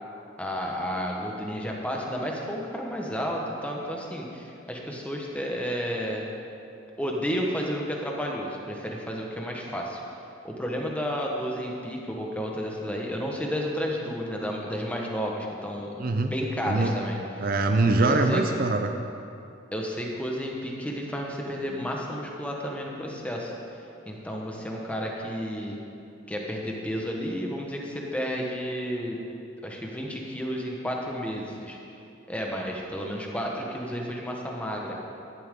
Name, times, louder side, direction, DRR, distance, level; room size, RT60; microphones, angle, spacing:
voice 1, 0.4-6.2 7.0-10.0 10.4-17.5 18.0-18.4 19.7-23.5 24.0-25.8 26.3-29.2 29.6-31.8 32.3-34.9, equal, 5° left, -1 dB, 1.2 m, -32 dB
voice 2, 16.0-16.3 16.6-16.9 17.4-18.9, right 2 dB, 45° right, 5 dB, 0.5 m, -23 dB
14.0 x 11.0 x 3.8 m, 2.7 s
head